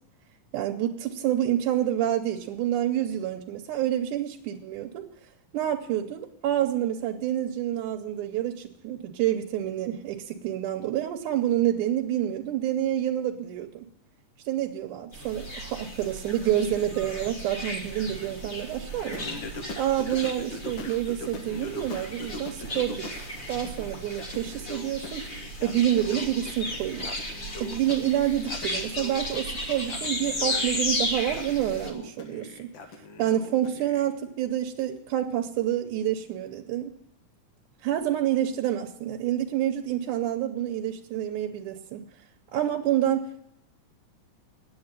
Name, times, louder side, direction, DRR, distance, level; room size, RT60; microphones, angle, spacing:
voice 1, 0.5-5.0 5.5-13.9 14.5-19.3 19.8-23.1 23.5-25.3 25.6-27.1 27.6-32.7 33.2-37.0 37.8-42.0 42.5-43.4, right 11 dB, 80° right, 4 dB, 2.3 m, -28 dB
sound 1, 15.1-31.9, left 1 dB, 45° left, 0.6 m, -35 dB
Singing, 19.1-23.3 23.6-34.0, left 2 dB, 80° left, 1.0 m, -42 dB
9.6 x 8.6 x 8.9 m, 0.76 s
omnidirectional pair, 3.6 m